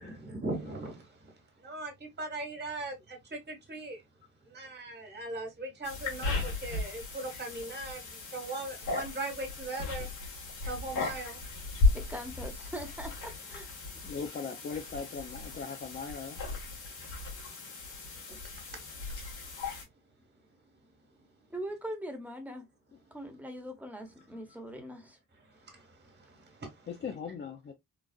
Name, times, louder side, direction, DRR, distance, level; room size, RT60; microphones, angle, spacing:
voice 1, 0.0-4.0 4.4-10.1 10.6-11.4 18.3-19.1 25.5-26.9, right 2 dB, 35° right, 1.6 m, -40 dB
sound 1, 5.8-19.8, left 3 dB, 85° left, 1.8 m, -35 dB
voice 2, 11.9-13.7 21.5-22.7 23.1-25.2, equal, 5° right, 1.0 m, -41 dB
voice 3, 14.0-16.4 26.9-27.7, left 5 dB, 35° left, 0.5 m, -39 dB
3.9 x 2.4 x 2.4 m
cardioid pair, 90°, 30 cm